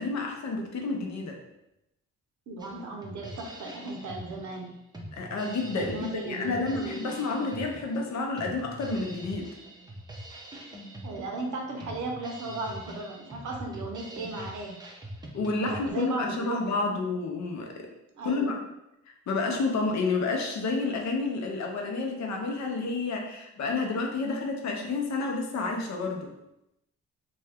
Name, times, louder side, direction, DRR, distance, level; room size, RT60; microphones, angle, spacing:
voice 1, 0.0-1.4 5.1-9.5 15.3-17.7 18.2-18.6 19.1-26.3, left 3 dB, 70° left, 2 dB, 0.6 m, -30 dB
voice 2, 2.5-4.7 5.7-7.1 11.0-14.8 15.6-16.8 18.2-18.6, right 3 dB, 80° right, 1 dB, 0.7 m, -36 dB
Drum kit, 2.6-15.9, right 1 dB, 15° right, 0.6 m, -44 dB
2.6 x 2.2 x 3.4 m, 0.88 s
cardioid pair, 75°, 29 cm